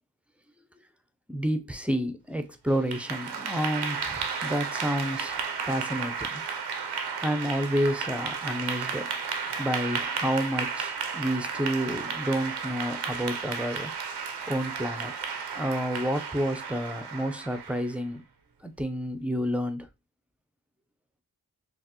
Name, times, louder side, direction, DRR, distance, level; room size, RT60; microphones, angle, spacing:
voice 1, 1.3-6.7 7.2-9.1 9.6-14.2 14.5-15.1 15.6-18.2 18.6-19.9, equal, 5° right, 0.6 m, -30 dB
Clapping / Applause, 2.7-18.0, right 6 dB, 85° right, 0.7 m, -33 dB
5.6 x 2.0 x 2.9 m
cardioid pair, 45°, 38 cm